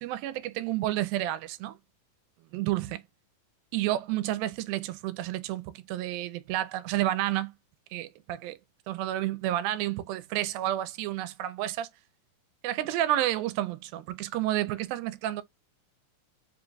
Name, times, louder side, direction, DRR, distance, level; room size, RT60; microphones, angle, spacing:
voice 1, 0.0-1.8 2.5-3.0 3.7-7.5 7.9-8.6 8.9-11.9 12.6-15.4, right 14 dB, 85° right, 2.4 m, -30 dB
5.4 x 2.3 x 3.9 m
omnidirectional pair, 4.1 m